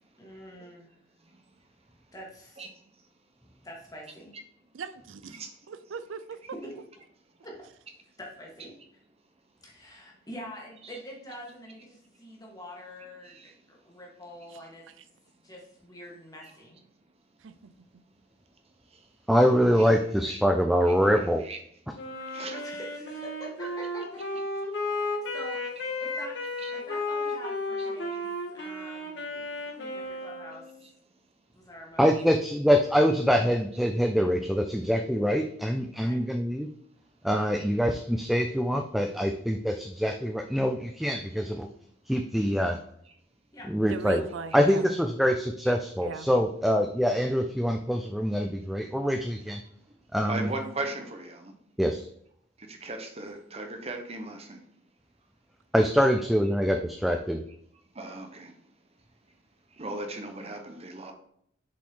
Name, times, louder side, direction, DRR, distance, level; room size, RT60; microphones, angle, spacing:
voice 1, 0.2-0.9 2.1-2.6 3.6-4.3 6.6-6.7 7.4-7.5 8.2-8.8 9.6-14.9 15.4-16.8 22.6-24.4 24.9-26.4 26.7-30.7 31.5-32.5 36.0-36.2 43.5-43.7 44.1-44.3, equal, 20° left, -2 dB, 2.0 m, -46 dB
voice 2, 4.7-6.4 14.5-14.6 17.4-17.7 43.8-44.8 46.0-46.3, right 5 dB, 75° right, 13 dB, 0.5 m, -40 dB
voice 3, 19.3-21.4 32.0-36.7 37.2-41.7 42.1-42.8 43.7-44.2 44.5-49.6 50.1-50.5 51.8-52.0 55.7-57.4, equal, ahead, 4 dB, 0.4 m, -24 dB
Wind instrument woodwind instrument, 21.9-30.8, left 2 dB, 65° left, 1.7 m, -34 dB
voice 4, 22.3-22.7 26.6-26.7 50.2-51.5 52.6-54.6 57.9-58.6 59.7-61.1, right 2 dB, 30° right, 5 dB, 0.9 m, -38 dB
7.1 x 5.1 x 3.7 m, 0.68 s
head